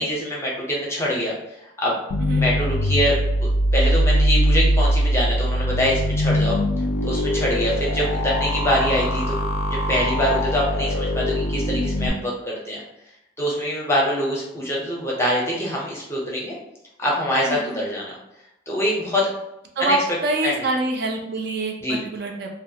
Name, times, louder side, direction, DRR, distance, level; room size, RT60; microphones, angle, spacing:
voice 1, 0.0-2.0 2.4-6.6 7.0-9.4 9.7-12.8 13.4-16.5 17.0-18.2 18.7-19.3 19.8-20.0 20.4-20.5 21.8-22.0, equal, 15° left, -4 dB, 0.5 m, -24 dB
sound 1, 2.1-12.1, equal, 70° left, 0.3 m, -22 dB
voice 2, 19.8-22.5, right 2 dB, 55° right, 2 dB, 0.3 m, -25 dB
2.3 x 2.1 x 2.7 m, 0.85 s
head